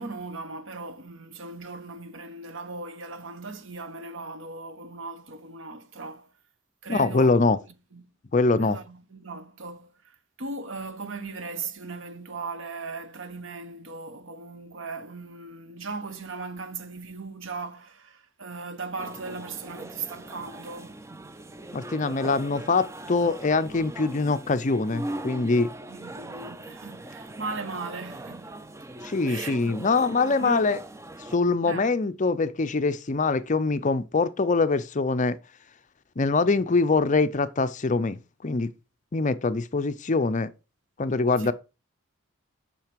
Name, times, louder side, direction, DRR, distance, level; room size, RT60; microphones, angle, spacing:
voice 1, 0.0-6.3 6.8-7.4 7.9-8.0 8.6-21.0 25.9-28.6 29.2-29.8 30.4-30.7 31.6-31.9 41.4-41.5, right 3 dB, 65° right, 1.0 m, -38 dB
voice 2, 6.9-7.6 8.3-8.8 21.7-25.7 29.0-30.8 31.3-35.4 36.2-38.7 39.1-40.5 41.0-41.5, left 3 dB, 35° left, 0.5 m, -24 dB
sound 1, 19.0-31.4, right 1 dB, 15° right, 0.4 m, -40 dB
7.6 x 5.7 x 5.2 m
head